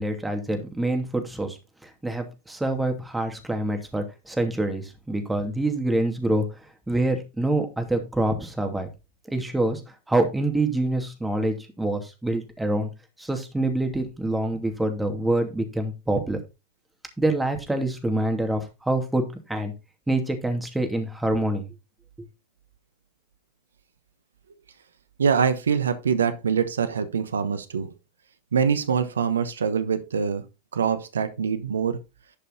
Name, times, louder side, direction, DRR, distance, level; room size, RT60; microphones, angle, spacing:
voice 1, 0.0-6.5 6.9-8.9 9.3-9.8 10.1-12.9 13.2-16.4 17.2-19.7 20.1-21.7, right 2 dB, 5° right, 2.6 m, -26 dB
voice 2, 25.2-27.9 28.5-30.4 30.7-32.0, right 6 dB, 85° right, 1.0 m, -24 dB
11.5 x 5.5 x 4.0 m
hypercardioid pair, 90°, 0 cm